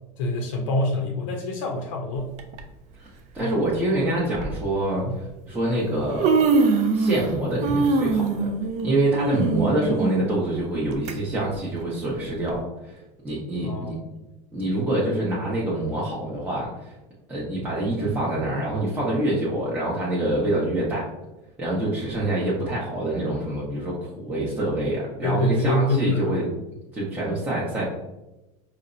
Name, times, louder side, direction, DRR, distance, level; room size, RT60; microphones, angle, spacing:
voice 1, 0.2-2.4 3.4-3.5 5.1-5.2 13.6-14.0 25.2-26.6, left 1 dB, 75° left, 0 dB, 0.5 m, -26 dB
Human voice, 2.4-2.6 3.6-3.7 4.3-4.5 5.5-5.6 5.9-7.3 7.6-11.1 11.5-11.6 12.5-12.6, right 4 dB, 45° right, 0.4 m, -23 dB
voice 2, 3.3-5.0 5.5-6.5 6.9-8.5 8.8-13.0 13.2-13.9 14.5-16.9 17.3-21.1 21.6-26.5 26.9-27.8, right 1 dB, 10° right, -8 dB, 0.7 m, -26 dB
4.1 x 2.0 x 2.5 m, 0.97 s
supercardioid pair, 125°, 16 cm